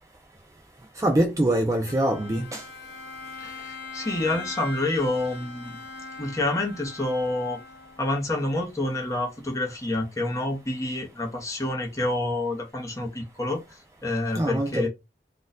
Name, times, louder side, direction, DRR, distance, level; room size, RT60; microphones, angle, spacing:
voice 1, 1.0-2.6 14.4-14.9, right 1 dB, 20° right, 0.4 m, -24 dB
Bowed string instrument, 1.9-8.3, left 3 dB, 80° left, 0.8 m, -41 dB
voice 2, 3.4-5.8 6.2-7.6 8.0-14.9, left 2 dB, 20° left, 0.8 m, -28 dB
2.6 x 2.3 x 4.0 m
head